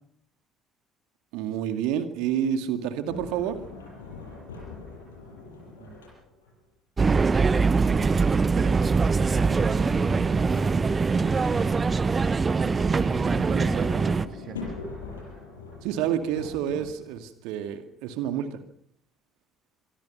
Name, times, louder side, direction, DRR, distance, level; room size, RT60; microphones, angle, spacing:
voice 1, 1.3-3.6 15.8-18.6, right 9 dB, 60° right, 8 dB, 2.2 m, -29 dB
Sliding door, 3.1-6.6 8.6-12.2 12.8-17.1, left 3 dB, 75° left, 7.1 m, -42 dB
voice 2, 5.6-6.0 7.8-9.0 12.7-14.7, right 5 dB, 45° right, 7 dB, 2.9 m, -36 dB
sound 1, 7.0-14.3, right 4 dB, 30° right, 1.1 m, -23 dB
25.5 x 23.0 x 5.7 m, 0.64 s
figure-of-eight pair, 50°, 0 cm